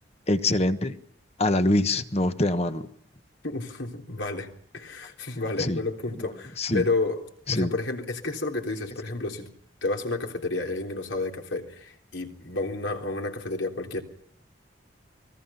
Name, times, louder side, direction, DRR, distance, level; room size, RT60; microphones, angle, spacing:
voice 1, 0.3-1.0 1.4-2.9 5.6-5.8 6.2-6.3 6.6-6.8 7.5-7.7, left 2 dB, 35° left, 1.3 m, -24 dB
voice 2, 3.4-7.2 7.5-9.5 9.8-14.0, left 2 dB, 75° left, 3.6 m, -31 dB
29.5 x 21.5 x 5.8 m
head